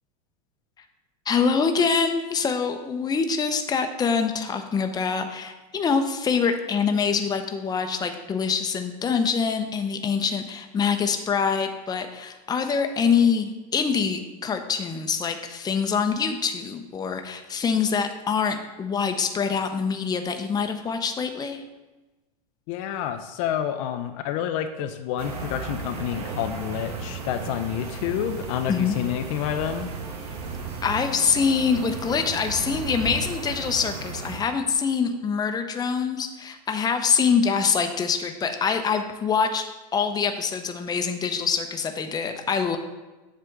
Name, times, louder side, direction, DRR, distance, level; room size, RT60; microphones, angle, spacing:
voice 1, 1.3-21.6 28.7-29.0 30.8-39.6 39.9-42.8, left 6 dB, 20° left, 6 dB, 0.7 m, -25 dB
voice 2, 22.7-29.9, left 10 dB, 55° left, 7 dB, 0.6 m, -29 dB
sound 1, 25.2-34.4, right 4 dB, 75° right, 1.1 m, -34 dB
7.6 x 3.4 x 6.4 m, 1.1 s
hypercardioid pair, 95°, 20 cm